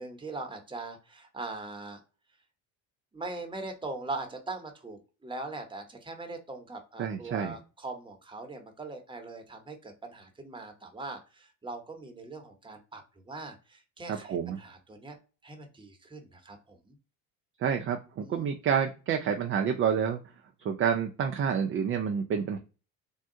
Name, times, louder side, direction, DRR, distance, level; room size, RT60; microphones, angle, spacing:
voice 1, 0.0-2.0 3.1-15.2 15.4-17.0 18.2-18.5, right 3 dB, 10° right, 4 dB, 0.9 m, -41 dB
voice 2, 7.0-7.6 14.1-14.6 17.6-20.2 20.6-22.6, right 7 dB, 35° right, 4 dB, 0.5 m, -28 dB
3.5 x 2.2 x 2.8 m, 0.32 s
hypercardioid pair, 70°, 41 cm